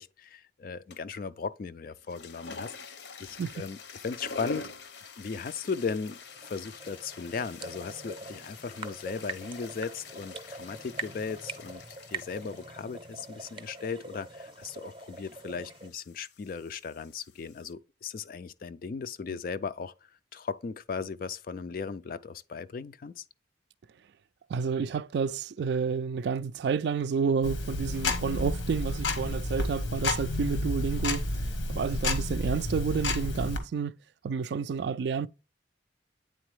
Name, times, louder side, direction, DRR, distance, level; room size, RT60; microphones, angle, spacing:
voice 1, 0.0-4.7 5.2-6.2 6.4-11.8 12.1-19.9 20.3-23.2, left 5 dB, 50° left, 0.3 m, -37 dB
sound 1, 0.9-1.2 1.9-17.7, left 3 dB, 65° left, 0.8 m, -47 dB
sound 2, 6.1-15.9, right 3 dB, 25° right, 0.7 m, -43 dB
voice 2, 24.5-31.2 31.7-33.9 34.2-35.3, right 5 dB, 60° right, 0.3 m, -30 dB
Tick-tock, 27.4-33.6, left 2 dB, 90° left, 1.3 m, -30 dB
8.8 x 4.0 x 3.1 m
head